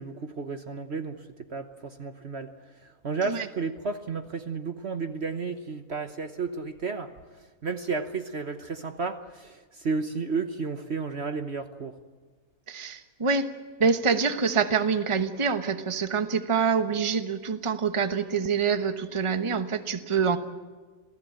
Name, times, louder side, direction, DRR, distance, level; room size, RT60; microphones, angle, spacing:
voice 1, 0.0-2.5 2.8-7.1 7.6-12.0, right 4 dB, 45° right, 8 dB, 1.3 m, -32 dB
voice 2, 12.7-13.5 13.8-20.4, right 5 dB, 20° right, 9 dB, 1.1 m, -26 dB
27.5 x 17.0 x 8.9 m, 1.4 s
omnidirectional pair, 1.6 m